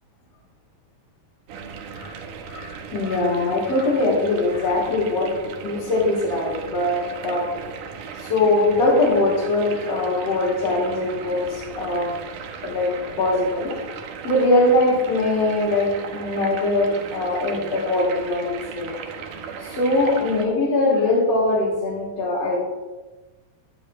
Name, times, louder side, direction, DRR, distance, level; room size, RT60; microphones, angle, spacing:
sound 1, 1.5-20.5, right 6 dB, 75° right, 2.5 m, -36 dB
voice 1, 2.5-7.5 8.2-12.1 12.6-12.9 13.2-13.7 14.2-19.0 19.6-22.6, left 2 dB, 50° left, -6 dB, 3.9 m, -22 dB
16.0 x 11.0 x 3.2 m, 1.2 s
omnidirectional pair, 3.9 m